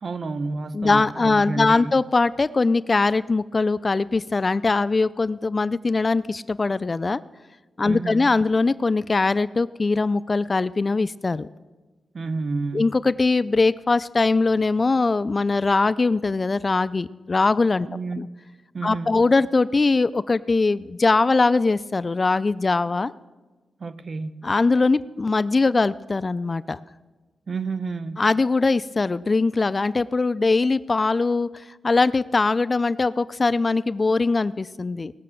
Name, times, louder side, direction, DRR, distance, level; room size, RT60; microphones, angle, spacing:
voice 1, 0.0-2.0 7.8-8.3 12.1-12.9 17.9-18.2 18.7-19.2 23.8-24.4 27.5-28.2, right 3 dB, 50° right, 12 dB, 0.7 m, -30 dB
voice 2, 0.7-7.2 7.8-11.5 12.7-17.9 18.2-18.3 18.8-23.1 24.4-26.8 28.2-35.1, left 3 dB, 35° left, 16 dB, 0.3 m, -21 dB
18.0 x 6.7 x 7.5 m, 1.2 s
wide cardioid pair, 100°, 0 cm